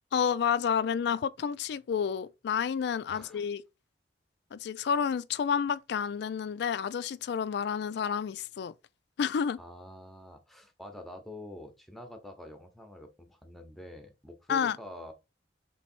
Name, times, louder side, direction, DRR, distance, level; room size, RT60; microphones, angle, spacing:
voice 1, 0.1-3.6 4.5-8.7 9.2-9.6 14.5-14.8, left 7 dB, 60° left, 0.3 m, -30 dB
voice 2, 3.1-3.5 9.6-15.1, left 1 dB, ahead, 0.8 m, -46 dB
3.4 x 3.1 x 4.3 m
head